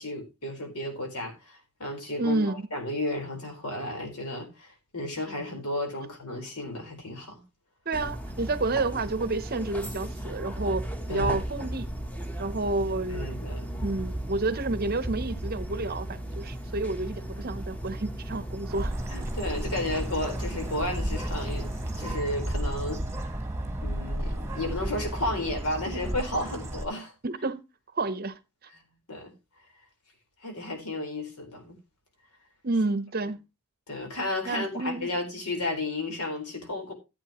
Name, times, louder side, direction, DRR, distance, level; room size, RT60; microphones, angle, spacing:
voice 1, 0.0-7.4 11.1-11.4 13.1-13.8 19.1-23.0 23.8-27.1 29.1-29.3 30.4-31.7 33.9-36.9, left 1 dB, 80° left, 4.2 m, -33 dB
voice 2, 2.2-2.7 7.9-11.9 12.4-13.4 13.8-18.9 27.2-27.6 27.9-28.4 32.6-33.4 34.4-35.1, right 2 dB, 40° right, 0.7 m, -30 dB
sound 1, 7.9-22.1, right 1 dB, 5° left, 0.9 m, -36 dB
Bird, 18.7-26.8, right 1 dB, 10° right, 1.3 m, -33 dB
14.0 x 8.6 x 3.0 m
head